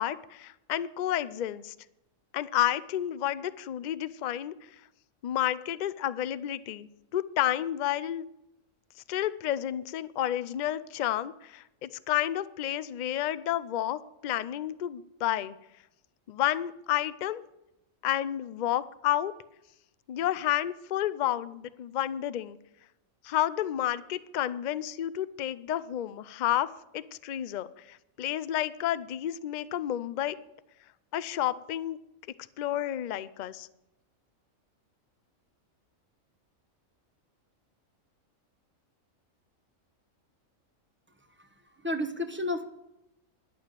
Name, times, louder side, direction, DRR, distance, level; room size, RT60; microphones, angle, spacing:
voice 1, 0.0-1.7 2.3-4.5 5.2-8.2 9.1-15.6 16.3-17.4 18.0-19.3 20.1-22.6 23.2-26.7 26.9-30.4 31.1-32.0 32.6-33.7, left 12 dB, 65° left, 15 dB, 0.4 m, -30 dB
voice 2, 41.4-42.6, left 1 dB, 10° right, 5 dB, 0.8 m, -32 dB
11.5 x 6.9 x 9.0 m, 0.88 s
omnidirectional pair, 1.4 m